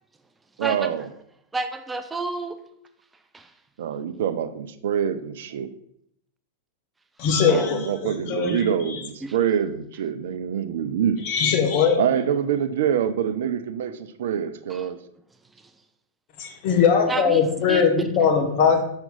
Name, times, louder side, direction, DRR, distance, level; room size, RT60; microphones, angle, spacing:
voice 1, 0.6-1.1 3.8-5.7 7.4-11.2 12.0-15.0, right 8 dB, 65° right, 11 dB, 0.5 m, -25 dB
voice 2, 1.5-2.6 3.3-3.5 7.5-7.7 8.5-8.6 9.2-9.3 14.7-14.9 17.1-17.8, right 3 dB, 10° right, 9 dB, 0.5 m, -30 dB
voice 3, 7.2-9.0 11.2-12.0 16.4-18.8, left 6 dB, 45° left, 4 dB, 1.2 m, -21 dB
5.9 x 5.2 x 3.9 m, 0.72 s
figure-of-eight pair, 95°, 0 cm